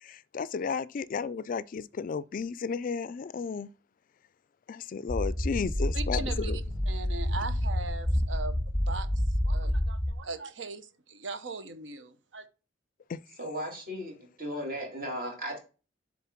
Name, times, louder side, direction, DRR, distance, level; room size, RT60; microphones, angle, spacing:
voice 1, 0.0-3.7 4.7-6.6 13.1-13.2, left 5 dB, 45° left, 0.3 m, -33 dB
sound 1, 5.1-10.1, left 1 dB, 5° left, 1.0 m, -29 dB
voice 2, 5.9-6.5 6.9-8.6 8.9-12.5, right 3 dB, 75° right, 0.8 m, -39 dB
voice 3, 13.4-15.6, equal, 50° right, 2.4 m, -36 dB
7.2 x 3.8 x 5.8 m
head